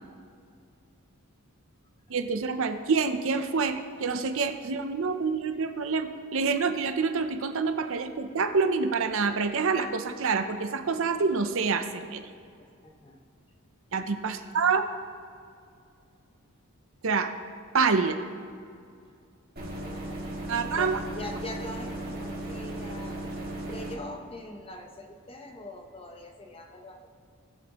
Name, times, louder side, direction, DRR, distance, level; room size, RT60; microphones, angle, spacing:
voice 1, 2.1-12.2 13.9-14.8 17.0-17.3 17.7-18.2 20.5-21.0, right 4 dB, 60° right, 8 dB, 0.6 m, -27 dB
voice 2, 12.8-13.2 14.3-14.5 19.7-20.3 20.7-23.2 23.7-27.1, left 1 dB, 25° left, 4 dB, 0.9 m, -42 dB
sound 1, 19.6-24.0, right 1 dB, 45° right, 2.1 m, -36 dB
19.0 x 7.5 x 3.0 m, 2.3 s
head